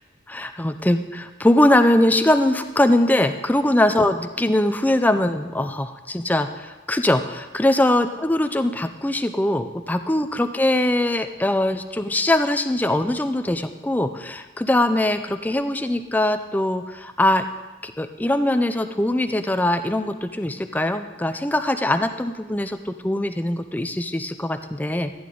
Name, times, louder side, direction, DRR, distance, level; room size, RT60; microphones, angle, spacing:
voice 1, 0.3-17.5 17.8-25.1, left 1 dB, 10° left, 9 dB, 0.4 m, -21 dB
14.5 x 9.6 x 3.8 m, 1.2 s
head